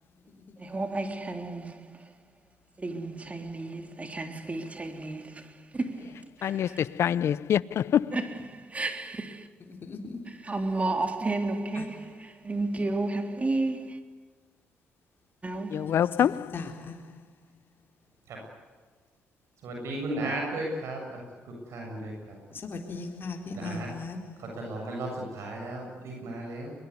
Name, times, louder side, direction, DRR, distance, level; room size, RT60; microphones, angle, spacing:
voice 1, 0.6-2.0 2.8-6.9 8.1-9.5 10.3-14.0 15.4-16.0, right 2 dB, 25° right, 3.6 m, -32 dB
voice 2, 6.4-8.1 15.7-16.5, left 9 dB, 60° left, 0.7 m, -25 dB
voice 3, 9.8-10.5 11.8-11.9 16.2-17.0 22.5-24.6, left 3 dB, 45° left, 4.0 m, -38 dB
voice 4, 19.6-21.2 21.7-22.3 23.5-23.9 24.4-26.7, right 1 dB, 70° right, 7.4 m, -35 dB
22.0 x 22.0 x 9.7 m
supercardioid pair, 55°, 5 cm